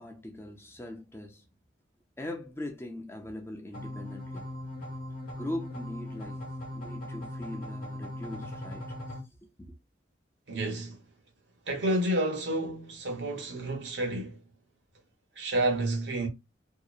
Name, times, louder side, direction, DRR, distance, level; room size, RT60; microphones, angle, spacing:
voice 1, 0.0-1.5 2.2-4.5 5.3-8.9 9.6-9.7, left 1 dB, 15° left, 0.5 m, -41 dB
sound 1, 3.7-9.2, left 1 dB, 50° left, 0.8 m, -39 dB
voice 2, 10.5-11.0 11.7-14.4 15.4-16.3, right 1 dB, 85° right, 1.0 m, -30 dB
2.8 x 2.0 x 2.3 m
head